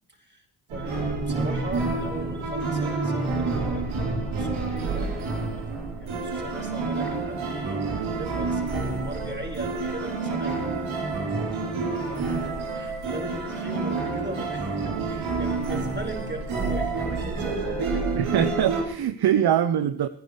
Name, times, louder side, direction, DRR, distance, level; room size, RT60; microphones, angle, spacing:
voice 1, 0.1-0.4 0.7-3.9 4.2-5.7 6.0-11.1 12.1-18.2, right 1 dB, 20° right, 5.1 m, -39 dB
sound 1, 0.7-18.8, right 3 dB, 75° right, 3.4 m, -28 dB
voice 2, 18.1-20.1, right 10 dB, 55° right, 0.8 m, -23 dB
27.5 x 10.5 x 3.3 m
hypercardioid pair, 45°, 48 cm